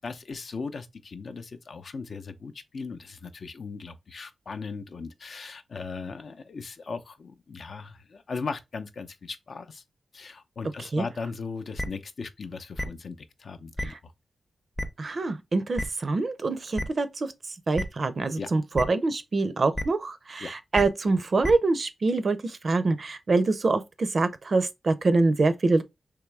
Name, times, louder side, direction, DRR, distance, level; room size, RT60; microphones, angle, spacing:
voice 1, 0.0-9.8 10.1-14.1 18.4-18.5 20.4-20.5, left 4 dB, 60° left, 0.5 m, -38 dB
sound 1, 11.8-11.9 12.8-12.9 13.8-13.9 14.8-14.9 15.8-15.9 16.8-16.9 17.8-17.9 18.8-18.9 19.7-19.8 20.7-20.8 21.4-21.5, left 1 dB, 10° left, 0.6 m, -29 dB
voice 2, 15.0-17.3 17.7-25.8, right 3 dB, 50° right, 0.5 m, -25 dB
3.6 x 3.0 x 3.3 m
wide cardioid pair, 95°, 0 cm